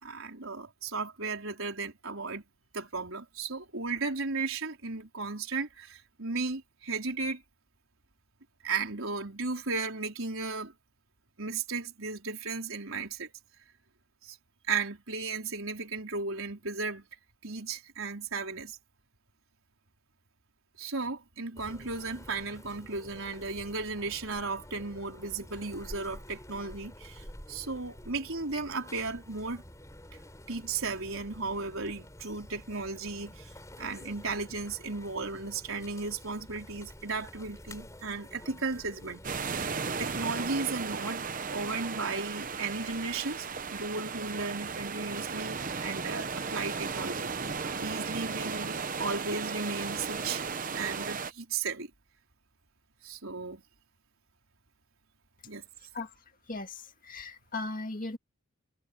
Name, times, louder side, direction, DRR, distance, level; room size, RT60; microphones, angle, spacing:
voice 1, 0.0-2.4 2.7-7.4 8.6-10.7 11.4-13.3 14.2-14.4 14.7-17.1 17.4-18.8 20.8-29.6 30.5-33.5 33.8-39.2 39.6-47.3 47.8-50.5 50.7-51.9 53.0-53.6 55.5-55.7, right 4 dB, 70° right, 4.4 m, -35 dB
sound 1, 21.6-39.5, left 1 dB, 15° left, 6.4 m, -49 dB
sound 2, 39.2-51.3, right 5 dB, 40° right, 0.9 m, -35 dB
voice 2, 56.5-58.2, left 2 dB, 40° left, 2.0 m, -37 dB
head